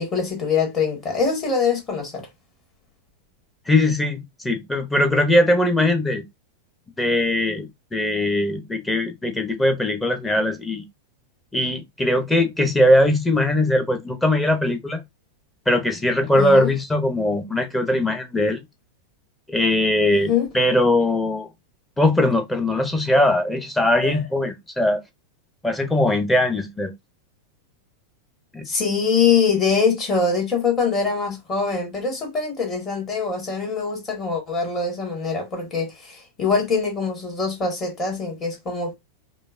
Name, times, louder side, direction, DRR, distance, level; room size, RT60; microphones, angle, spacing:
voice 1, 0.0-2.3 16.3-16.7 20.1-20.5 24.0-24.2 28.6-39.0, left 5 dB, 25° left, 1.7 m, -23 dB
voice 2, 3.7-6.2 7.0-10.8 11.5-15.0 15.7-18.6 19.5-21.5 22.0-25.0 25.6-26.9 28.5-28.7, left 1 dB, 10° left, 0.8 m, -20 dB
5.0 x 2.2 x 2.5 m
figure-of-eight pair, 90°, 0 cm